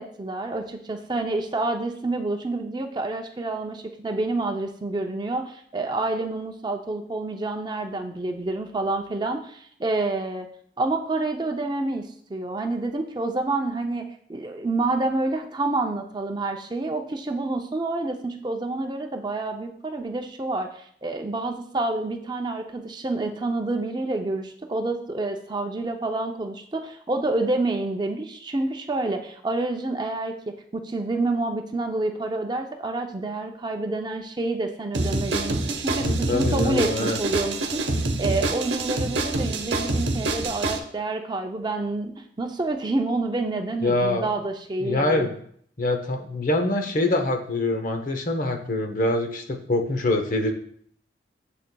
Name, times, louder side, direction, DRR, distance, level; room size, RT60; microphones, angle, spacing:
voice 1, 0.0-10.5 10.8-45.3, right 2 dB, 25° right, 4 dB, 0.4 m, -28 dB
sound 1, 34.9-40.8, right 2 dB, 75° right, 0.8 m, -26 dB
voice 2, 36.0-37.2 43.8-44.3 44.8-45.3 45.8-50.5, left 2 dB, 45° left, 5 dB, 0.7 m, -24 dB
7.4 x 6.5 x 2.2 m, 0.63 s
head